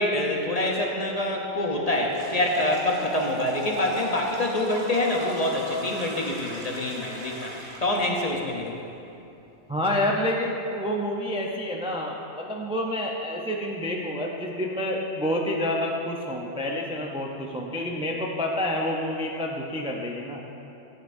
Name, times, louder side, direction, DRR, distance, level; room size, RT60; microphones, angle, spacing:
voice 1, 0.0-7.5 7.8-8.8, left 1 dB, 40° left, 0 dB, 0.8 m, -26 dB
sound 1, 2.1-8.0, right 1 dB, 70° right, 1.4 m, -39 dB
voice 2, 9.7-20.4, left 1 dB, 10° right, -1 dB, 0.4 m, -28 dB
11.5 x 9.1 x 2.6 m, 2.8 s
omnidirectional pair, 1.2 m